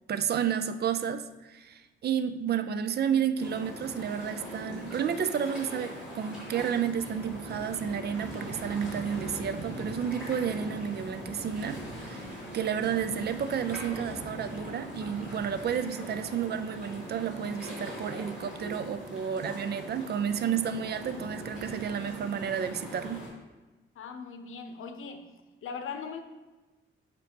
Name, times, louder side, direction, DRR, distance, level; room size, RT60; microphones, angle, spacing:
voice 1, 0.1-23.3, right 8 dB, 50° right, 11 dB, 0.4 m, -31 dB
sound 1, 3.4-23.3, equal, 5° right, 2.2 m, -41 dB
voice 2, 24.0-25.3 25.6-26.2, left 5 dB, 75° left, 7 dB, 0.7 m, -39 dB
7.6 x 3.1 x 5.1 m, 1.2 s
wide cardioid pair, 140°, 21 cm